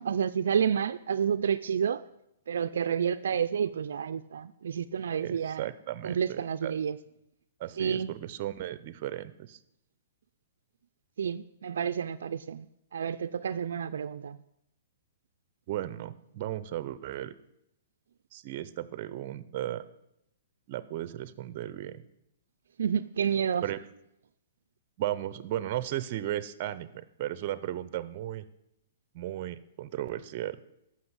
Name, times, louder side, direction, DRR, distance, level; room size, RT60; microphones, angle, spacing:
voice 1, 0.0-2.0 2.5-5.7 6.0-7.0 7.8-8.1 11.2-12.7 12.9-14.4 22.8-23.7, right 7 dB, 80° right, 0.4 m, -29 dB
voice 2, 5.2-6.7 7.6-9.6 15.7-17.3 18.3-19.8 20.7-22.0 23.6-23.8 25.0-28.5 29.1-30.6, right 13 dB, 40° right, 0.7 m, -35 dB
13.5 x 6.1 x 8.0 m
hypercardioid pair, 155°, 0 cm